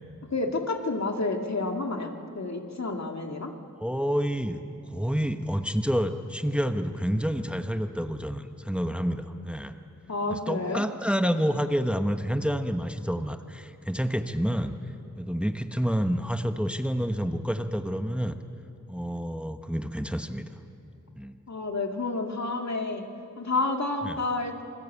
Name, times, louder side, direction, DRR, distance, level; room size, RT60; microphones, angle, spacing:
voice 1, 0.3-3.5 10.1-10.9 21.5-23.1 23.4-24.6, left 3 dB, 60° left, 3 dB, 2.3 m, -30 dB
voice 2, 3.8-4.6 4.9-9.8 10.3-14.8 15.2-18.3 18.9-20.4 21.2-21.4 24.0-24.2, equal, 5° right, 7 dB, 1.2 m, -28 dB
27.5 x 20.5 x 8.5 m, 2.6 s
wide cardioid pair, 55°, 31 cm